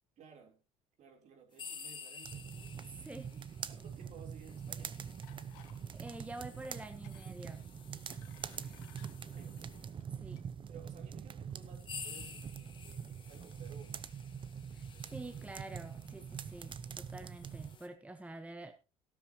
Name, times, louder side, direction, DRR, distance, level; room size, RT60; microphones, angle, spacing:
voice 1, 0.2-0.6 1.0-2.5 3.3-5.0 8.5-8.9 9.2-9.8 10.7-14.1, right 5 dB, 55° right, 3.7 m, -57 dB
sound 1, 1.5-10.0 10.8-10.9 11.5-17.9, left 5 dB, 35° left, 2.1 m, -53 dB
sound 2, 2.2-17.7, right 7 dB, 35° right, 0.8 m, -45 dB
voice 2, 2.9-3.3 5.9-7.6 10.2-10.4 14.7-18.7, right 2 dB, 10° right, 1.1 m, -47 dB
sound 3, 5.2-5.8 6.1-6.3 6.8-7.3 7.8-9.1 9.9-10.0 10.4-10.5, left 10 dB, 90° left, 1.7 m, -61 dB
13.5 x 12.5 x 3.0 m
supercardioid pair, 90°, 15 cm